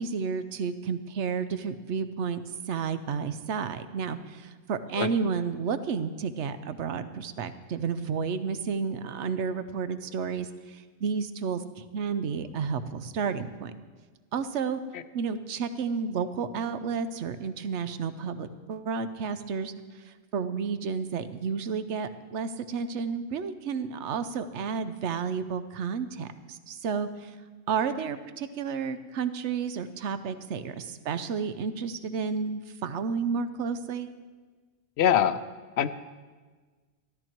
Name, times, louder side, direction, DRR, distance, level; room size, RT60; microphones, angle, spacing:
voice 1, 0.0-2.4 2.7-13.7 14.3-14.8 15.1-19.7 20.1-27.3 27.7-34.1, right 6 dB, 90° right, 11 dB, 1.0 m, -31 dB
voice 2, 35.0-35.4 35.8-35.9, left 9 dB, 75° left, 13 dB, 0.9 m, -22 dB
13.5 x 13.0 x 4.5 m, 1.4 s
omnidirectional pair, 1.1 m